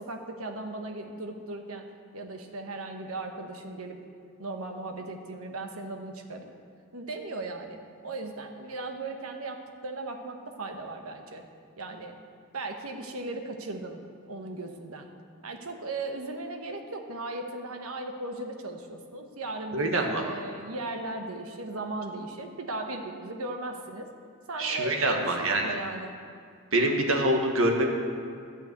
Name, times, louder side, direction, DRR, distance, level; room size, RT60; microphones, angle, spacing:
voice 1, 0.0-1.9 2.1-4.0 4.4-6.5 6.9-11.4 11.8-12.2 12.5-15.1 15.4-24.1 24.5-26.2, right 2 dB, 85° right, 4 dB, 1.1 m, -37 dB
voice 2, 19.7-20.2 24.6-25.7 26.7-27.9, right 1 dB, 70° right, 2 dB, 1.5 m, -25 dB
12.0 x 5.6 x 9.1 m, 2.2 s
head